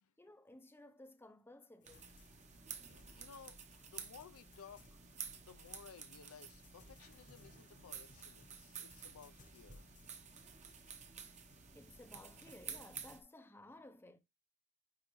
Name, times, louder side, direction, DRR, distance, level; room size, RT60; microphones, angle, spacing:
voice 1, 0.2-2.2 11.7-14.2, left 1 dB, 10° left, 0.5 m, -57 dB
sound 1, 1.8-13.2, left 2 dB, 35° left, 0.9 m, -67 dB
sound 2, 1.8-13.2, right 7 dB, 30° right, 0.8 m, -52 dB
voice 2, 2.9-5.0 5.5-9.9, left 6 dB, 65° left, 0.5 m, -58 dB
9.7 x 3.6 x 3.1 m
head